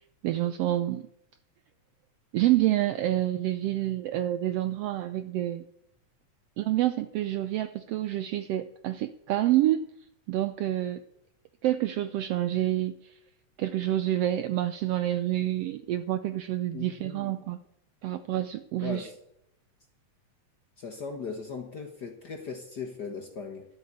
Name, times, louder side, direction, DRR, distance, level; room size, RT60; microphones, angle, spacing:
voice 1, 0.2-1.1 2.3-5.6 6.6-9.9 10.3-11.0 11.6-13.1 13.6-17.6 18.0-19.1, right 14 dB, 80° right, 12 dB, 1.4 m, -28 dB
voice 2, 16.7-17.3 18.8-19.2 20.8-23.7, left 5 dB, 50° left, 4 dB, 1.2 m, -38 dB
12.0 x 7.9 x 8.5 m, 0.76 s
omnidirectional pair, 3.3 m